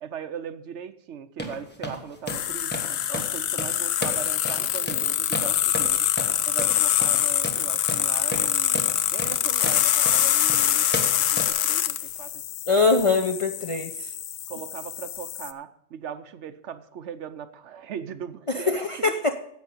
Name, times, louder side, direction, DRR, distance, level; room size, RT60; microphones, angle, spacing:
voice 1, 0.0-6.1 6.4-8.9 9.1-12.4 14.5-19.1, right 8 dB, 70° right, 11 dB, 1.0 m, -39 dB
sound 1, 1.4-11.5, equal, 10° left, 1.3 m, -35 dB
sound 2, 2.3-15.5, left 11 dB, 85° left, 1.0 m, -25 dB
voice 2, 12.7-14.1 18.5-19.4, left 3 dB, 35° left, 4 dB, 0.5 m, -23 dB
10.5 x 7.8 x 5.4 m, 0.72 s
omnidirectional pair, 1.3 m